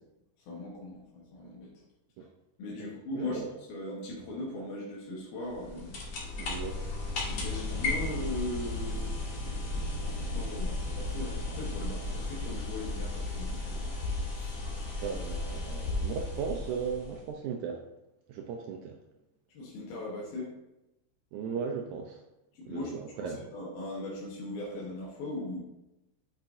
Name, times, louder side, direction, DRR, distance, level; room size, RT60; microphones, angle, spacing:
voice 1, 0.5-1.7 2.6-6.0 7.3-9.6 10.0-13.9 14.3-14.6 19.5-20.5 22.5-22.9 23.2-25.6, left 2 dB, 85° left, -4 dB, 3.1 m, -39 dB
voice 2, 2.8-3.5 6.4-6.8 15.0-17.8 18.3-19.0 21.3-22.2 22.7-23.4, right 6 dB, 85° right, 2 dB, 1.7 m, -37 dB
sound 1, 5.5-17.3, left 2 dB, 55° left, 2.1 m, -35 dB
sound 2, 7.7-15.4, right 4 dB, 55° right, 1.7 m, -44 dB
8.8 x 6.6 x 2.7 m, 0.94 s
omnidirectional pair, 4.2 m